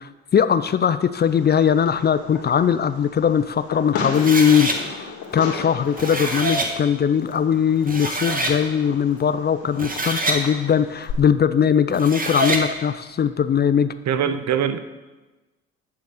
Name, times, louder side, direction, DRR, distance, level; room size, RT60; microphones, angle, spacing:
voice 1, 0.0-13.9, left 8 dB, 25° left, 12 dB, 0.4 m, -20 dB
Fireworks, 1.1-11.1, left 6 dB, 55° left, 2.1 m, -36 dB
sound 1, 4.1-4.8 5.8-6.7 7.5-7.6 7.9-8.6 9.6-10.4 11.9-12.7, right 2 dB, 20° right, 1.6 m, -25 dB
voice 2, 14.1-14.8, right 8 dB, 40° right, 11 dB, 0.9 m, -22 dB
9.4 x 6.8 x 5.0 m, 1.1 s
hypercardioid pair, 55°, 42 cm